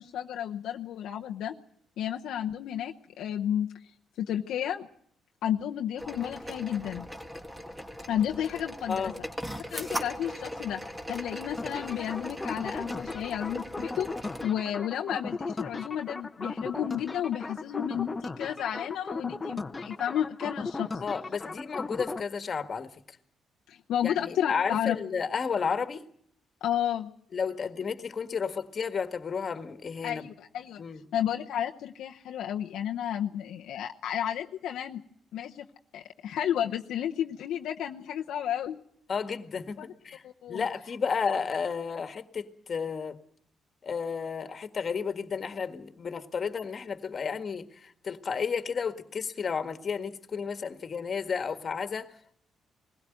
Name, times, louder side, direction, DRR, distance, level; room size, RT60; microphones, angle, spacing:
voice 1, 0.0-1.5 2.0-3.7 4.2-4.9 5.4-7.1 8.1-9.1 9.7-10.8 11.1-14.1 14.4-20.9 23.7-25.0 26.6-27.1 30.0-30.8 31.1-35.0 35.3-35.7 35.9-38.8 40.2-40.7, left 10 dB, 80° left, 0.8 m, -32 dB
sound 1, 6.0-14.4, equal, 10° right, 1.9 m, -39 dB
voice 2, 8.9-9.2 21.0-22.9 24.0-26.0 27.3-30.3 30.8-31.0 39.1-40.2 40.5-43.2 43.8-52.1, left 6 dB, 45° left, 1.7 m, -32 dB
sound 2, 11.6-22.2, left 3 dB, 20° left, 1.0 m, -37 dB
20.5 x 16.5 x 9.2 m
cardioid pair, 90°, 0 cm